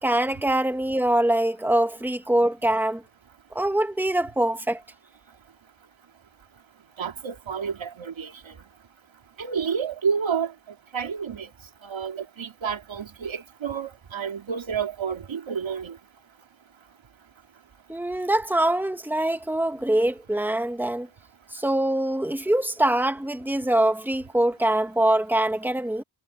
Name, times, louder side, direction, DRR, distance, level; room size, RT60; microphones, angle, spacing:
voice 1, 0.0-3.0 3.5-4.8 17.9-21.1 21.5-26.0, right 1 dB, 5° right, 1.7 m, -23 dB
voice 2, 7.0-8.5 9.4-10.5 10.9-11.5 11.8-16.0, right 6 dB, 85° right, 2.9 m, -30 dB
wide cardioid pair, 75°, 45 cm